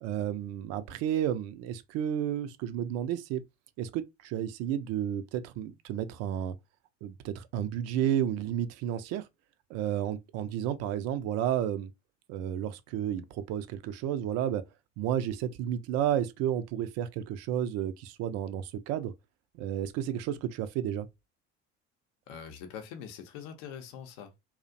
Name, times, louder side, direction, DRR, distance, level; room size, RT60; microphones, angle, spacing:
voice 1, 0.0-3.4 3.8-6.6 7.0-9.3 9.7-11.9 12.3-14.6 15.0-19.1 19.5-21.1, right 10 dB, 45° right, 0.4 m, -32 dB
voice 2, 22.3-24.4, left 8 dB, 60° left, 0.6 m, -43 dB
2.4 x 2.1 x 2.5 m
figure-of-eight pair, 60°, 36 cm